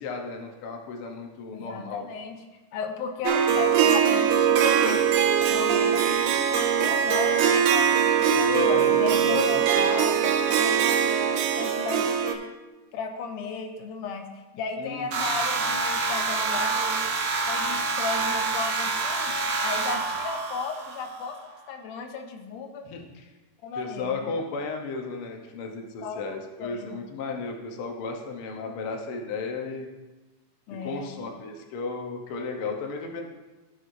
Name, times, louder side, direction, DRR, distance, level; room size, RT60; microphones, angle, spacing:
voice 1, 0.0-2.0 8.3-9.6 14.8-15.3 22.8-23.3 23.8-29.9 30.7-33.2, left 4 dB, 65° left, 2 dB, 1.4 m, -34 dB
voice 2, 1.5-2.4 2.7-5.1 5.5-11.1 11.6-12.4 12.9-14.3 14.5-17.0 17.5-19.4 19.6-21.4 21.7-22.9 23.6-24.3 26.0-27.0 30.7-31.1, left 5 dB, 80° left, 4 dB, 2.3 m, -35 dB
Harp, 3.3-12.4, right 8 dB, 85° right, 2.2 m, -22 dB
sound 1, 15.1-21.3, right 4 dB, 65° right, 2.0 m, -27 dB
15.0 x 6.4 x 2.7 m, 1.2 s
omnidirectional pair, 3.6 m